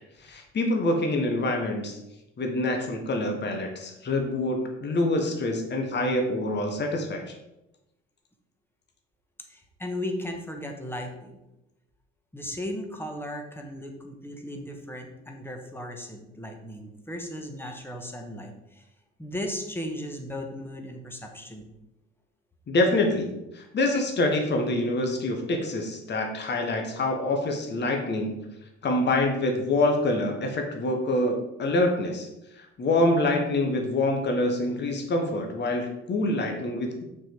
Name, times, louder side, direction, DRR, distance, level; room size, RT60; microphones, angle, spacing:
voice 1, 0.2-2.0 2.4-7.2 22.7-28.4 28.8-32.3 32.6-37.0, left 2 dB, 30° left, 3 dB, 1.4 m, -26 dB
voice 2, 9.5-11.4 12.3-18.9 19.2-21.7, left 1 dB, 5° left, 3 dB, 1.5 m, -36 dB
6.0 x 4.7 x 5.2 m, 0.91 s
figure-of-eight pair, 55°, 33 cm